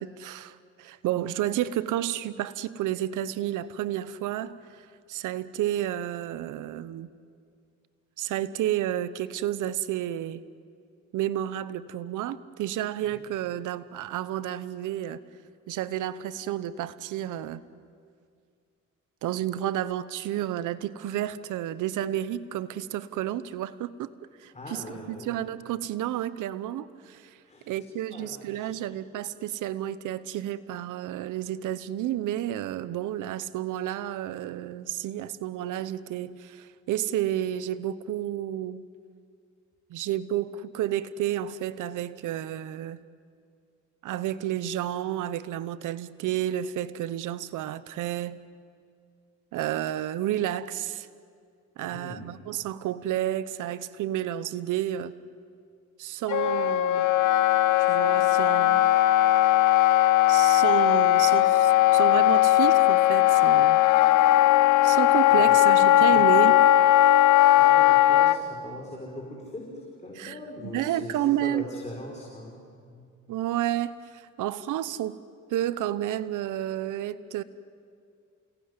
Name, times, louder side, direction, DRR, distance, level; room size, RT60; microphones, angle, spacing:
voice 1, 0.0-7.1 8.2-10.4 11.1-15.2 15.7-17.6 19.2-24.1 24.4-27.4 27.7-38.8 39.9-43.0 44.0-48.4 49.5-51.1 51.8-55.1 56.0-57.1 57.9-58.9 60.3-63.8 64.8-66.5 70.2-70.4 70.7-71.7 73.3-75.2 75.5-77.4, right 12 dB, 85° right, 16 dB, 0.9 m, -31 dB
voice 2, 24.5-25.4 27.4-29.0 51.8-52.2 65.3-65.7 66.1-66.3 67.6-72.6 72.9-73.0, left 2 dB, 25° left, -1 dB, 5.1 m, -41 dB
Wind instrument woodwind instrument, 56.3-68.4, left 14 dB, 85° left, 0.8 m, -19 dB
28.5 x 19.5 x 9.7 m, 2.3 s
cardioid pair, 90°, 30 cm